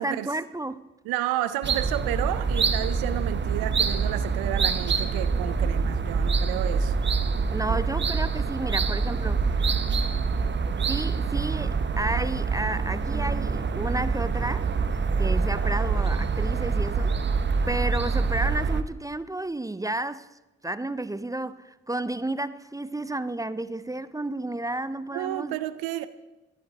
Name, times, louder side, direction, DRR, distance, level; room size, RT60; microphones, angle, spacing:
voice 1, 0.0-0.9 7.5-9.7 10.9-14.7 15.2-17.1 17.7-20.3 20.6-25.6, right 2 dB, 10° right, 0.4 m, -32 dB
voice 2, 1.1-7.0 7.7-7.8 25.1-26.1, right 14 dB, 75° right, 0.6 m, -31 dB
sound 1, 1.6-18.8, right 5 dB, 30° right, 0.8 m, -25 dB
17.0 x 12.0 x 2.9 m
hypercardioid pair, 45°, 37 cm